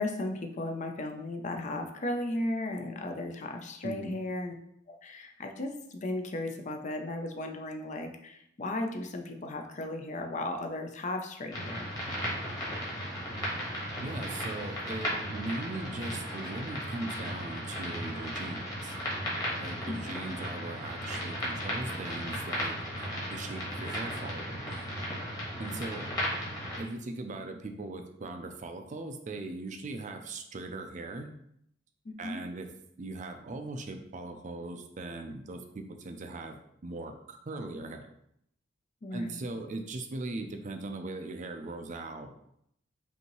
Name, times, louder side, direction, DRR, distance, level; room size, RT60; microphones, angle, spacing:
voice 1, 0.0-4.5 4.9-11.9 19.9-20.0 32.1-32.4 39.0-39.4, left 2 dB, 40° left, 5 dB, 0.5 m, -35 dB
voice 2, 3.8-4.2 14.0-18.9 19.6-22.7 23.3-24.7 25.6-26.1 26.8-31.3 32.2-32.7 33.0-36.6 36.8-38.1 39.1-42.3, right 2 dB, 40° right, 6 dB, 0.4 m, -39 dB
sound 1, 11.5-26.8, equal, 20° left, 1.4 m, -35 dB
5.3 x 2.7 x 3.0 m, 0.72 s
head